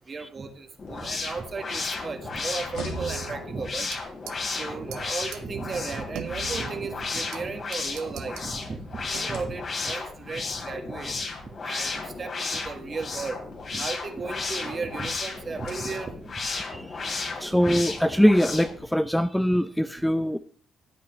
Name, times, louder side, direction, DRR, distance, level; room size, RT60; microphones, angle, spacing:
voice 1, 0.1-3.9 4.6-11.2 11.6-13.4 13.7-16.5, right 4 dB, 40° right, 7 dB, 1.6 m, -35 dB
sound 1, 0.7-4.0 5.3-6.5 7.3-8.7 9.1-10.0 11.0-11.1 11.4-11.5 12.7-14.0 15.2-16.4, left 4 dB, 80° left, 2.2 m, -47 dB
sound 2, 0.8-18.8, left 4 dB, 45° left, 2.9 m, -34 dB
sound 3, 2.8-4.0 4.3-4.5 4.9-5.0 5.3-5.4 5.7-7.4 7.7-8.5 9.1-9.5, right 10 dB, 90° right, 0.8 m, -39 dB
voice 2, 16.6-16.9 17.4-20.4, equal, 5° left, 10 dB, 0.5 m, -22 dB
14.5 x 8.5 x 3.2 m, 0.42 s
cardioid pair, 90°, 0 cm